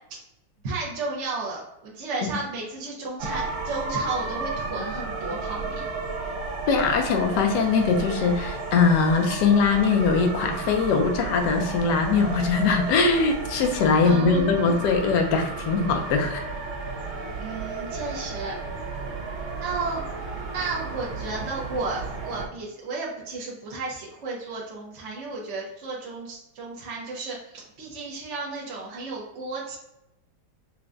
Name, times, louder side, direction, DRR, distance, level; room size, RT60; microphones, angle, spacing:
voice 1, 0.6-5.9 14.0-14.8 17.4-18.5 19.6-20.0 20.5-29.8, right 3 dB, 60° right, -4 dB, 0.7 m, -33 dB
sound 1, 3.2-22.5, right 3 dB, 75° right, 1.7 m, -33 dB
voice 2, 6.7-16.4, left 5 dB, 70° left, 4 dB, 1.1 m, -21 dB
5.8 x 2.2 x 2.5 m, 0.85 s
omnidirectional pair, 2.2 m